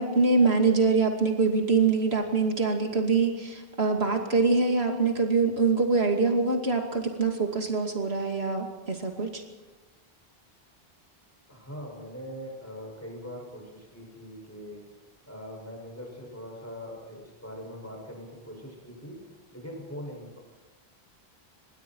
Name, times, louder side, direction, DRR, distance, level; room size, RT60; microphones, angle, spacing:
voice 1, 0.0-9.4, right 4 dB, 85° right, 2 dB, 2.8 m, -24 dB
voice 2, 11.5-20.4, equal, 15° left, 0 dB, 7.1 m, -42 dB
26.5 x 21.0 x 4.7 m, 1.2 s
omnidirectional pair, 1.0 m